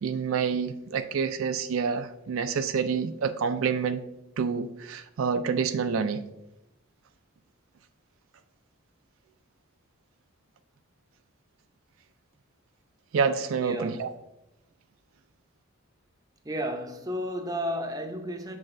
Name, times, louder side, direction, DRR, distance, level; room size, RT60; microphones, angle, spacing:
voice 1, 0.0-4.0 4.4-6.2 13.1-14.1, right 6 dB, 70° right, 0.4 m, -28 dB
voice 2, 13.6-14.1 16.4-18.6, equal, 15° right, 0.6 m, -33 dB
7.2 x 5.9 x 2.6 m
head